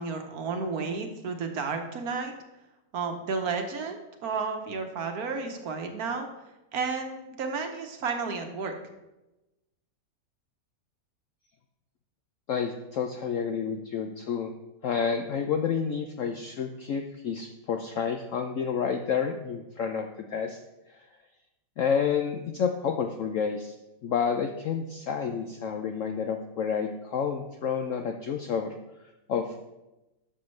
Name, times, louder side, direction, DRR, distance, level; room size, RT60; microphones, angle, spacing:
voice 1, 0.0-2.3 2.9-6.3 6.7-8.7, right 4 dB, 60° right, 5 dB, 1.3 m, -32 dB
voice 2, 12.5-14.5 14.8-20.6 21.8-23.7 24.0-28.7 29.3-29.7, left 6 dB, 70° left, 5 dB, 0.7 m, -29 dB
11.5 x 6.6 x 3.2 m, 0.99 s
omnidirectional pair, 1.9 m